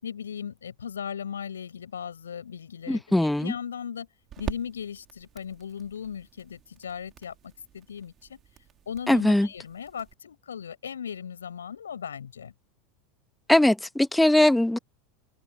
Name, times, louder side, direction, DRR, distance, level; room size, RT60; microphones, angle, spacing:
voice 1, 0.0-4.1 4.4-8.4 8.9-12.5, left 8 dB, 75° left, 5.9 m, -37 dB
sound 1, 2.2-10.1, right 10 dB, 35° right, 4.8 m, -44 dB
voice 2, 2.9-3.5 9.1-9.5 13.5-14.8, left 1 dB, 5° left, 1.5 m, -20 dB
figure-of-eight pair, 80°, 0 cm